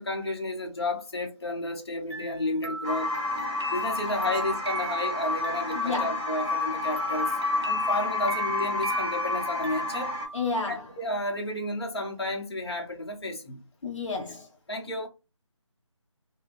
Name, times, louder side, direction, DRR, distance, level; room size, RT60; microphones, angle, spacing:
voice 1, 0.0-3.1 3.7-7.4 7.6-10.1 10.7-13.6 14.7-15.1, left 1 dB, 50° left, 0.9 m, -32 dB
sound 1, 2.1-6.4 7.0-10.9, right 3 dB, 55° right, 0.6 m, -39 dB
sound 2, 2.8-10.3, left 3 dB, 5° left, 0.6 m, -29 dB
voice 2, 5.8-6.1 10.3-10.8 13.8-14.5, left 3 dB, 75° left, 0.5 m, -30 dB
2.5 x 2.2 x 3.3 m
figure-of-eight pair, 160°, 16 cm